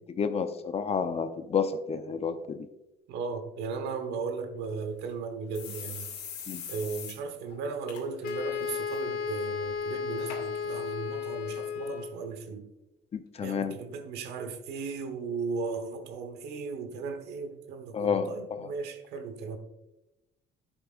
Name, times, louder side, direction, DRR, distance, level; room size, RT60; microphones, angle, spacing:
voice 1, 0.2-2.7 6.5-6.6 13.1-13.8 17.9-18.7, left 6 dB, 35° left, 0.7 m, -30 dB
voice 2, 3.1-6.1 6.7-12.7 13.4-19.6, right 4 dB, 80° right, 1.2 m, -36 dB
sound 1, 4.6-4.7 5.0-5.1 5.5-7.2 7.5-7.6 7.9-8.3 8.7-9.0 9.7-9.8 10.3-10.4 11.1-11.2, left 7 dB, 90° left, 2.2 m, -41 dB
Wind instrument woodwind instrument, 8.2-12.3, left 6 dB, 60° left, 1.0 m, -34 dB
10.5 x 8.1 x 2.5 m
cardioid pair, 110°, 17 cm